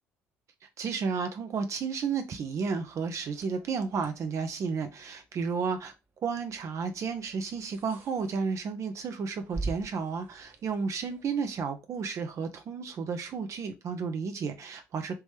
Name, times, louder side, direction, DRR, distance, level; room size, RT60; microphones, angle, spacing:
voice 1, 0.8-5.9 6.2-15.2, right 5 dB, 50° right, 0.6 m, -32 dB
sound 1, 3.2-11.5, right 3 dB, 30° right, 1.0 m, -45 dB
3.3 x 3.0 x 3.2 m
hypercardioid pair, 55°, 7 cm